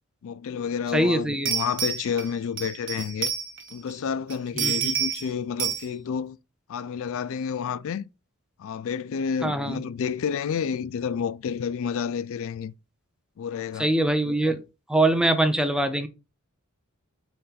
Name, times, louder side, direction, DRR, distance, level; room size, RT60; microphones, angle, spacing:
voice 1, 0.2-3.3 3.7-6.4 6.7-8.1 8.6-12.7 13.4-13.9, left 7 dB, 65° left, 0.3 m, -30 dB
voice 2, 0.9-1.5 4.6-4.9 9.4-9.8 13.8-14.6 14.9-16.1, right 1 dB, 5° right, 0.5 m, -23 dB
sound 1, 0.9-1.0 1.5-3.9 4.3-5.3 5.6-5.9, right 8 dB, 60° right, 0.8 m, -29 dB
4.2 x 3.2 x 3.8 m
head